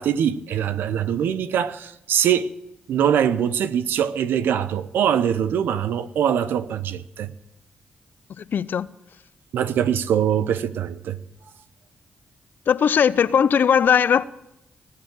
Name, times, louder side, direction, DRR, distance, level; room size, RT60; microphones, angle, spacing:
voice 1, 0.0-2.5 2.9-7.3 9.5-11.2, right 9 dB, 85° right, 0.7 m, -23 dB
voice 2, 8.4-8.9 12.7-14.2, left 7 dB, 65° left, 0.6 m, -18 dB
19.0 x 6.7 x 8.8 m
supercardioid pair, 55°, 3 cm